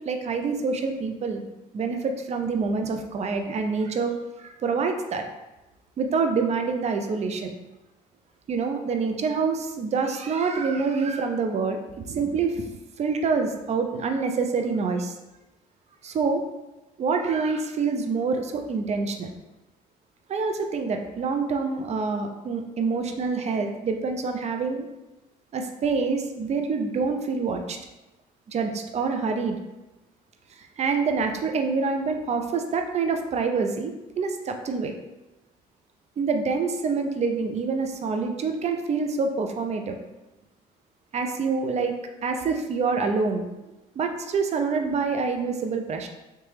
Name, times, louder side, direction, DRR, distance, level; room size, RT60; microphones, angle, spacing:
voice 1, 0.0-1.4 1.7-5.2 6.0-7.5 8.5-15.2 16.0-16.4 17.0-19.3 20.3-24.9 25.5-27.8 28.5-29.6 30.6-34.9 36.2-40.0 41.1-41.9 42.2-46.1, right 4 dB, 40° right, 5 dB, 0.5 m, -26 dB
3.2 x 2.9 x 3.3 m, 1.0 s
supercardioid pair, 65°, 17 cm